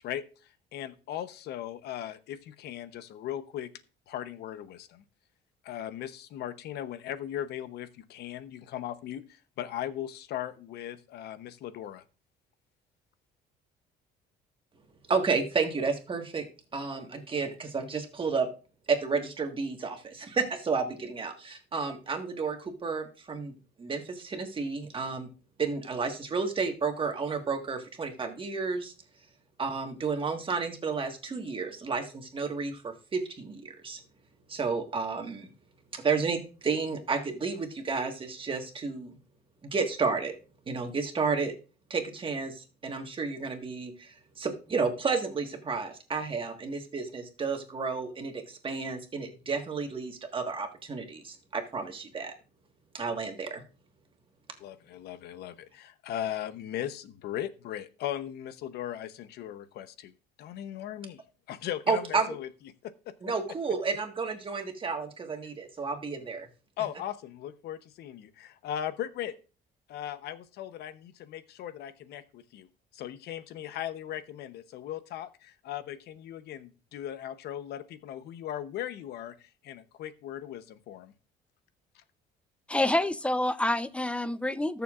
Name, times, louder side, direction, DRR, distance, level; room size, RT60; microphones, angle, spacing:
voice 1, 0.0-3.7 4.1-5.0 5.6-12.0 54.6-61.2 61.5-62.5 62.8-62.9 66.8-69.3 69.9-81.1, left 11 dB, 75° left, 0.9 m, -38 dB
voice 2, 15.1-16.5 16.7-18.5 18.9-23.5 23.8-25.3 25.6-28.9 29.6-34.0 34.5-35.5 35.9-39.1 39.6-40.3 40.7-41.5 41.9-52.3 52.9-53.6 61.9-62.3 63.2-66.5, right 4 dB, 30° right, 1.6 m, -31 dB
voice 3, 82.7-84.8, left 1 dB, 5° left, 0.6 m, -27 dB
19.5 x 6.9 x 2.5 m
cardioid pair, 110°, 17 cm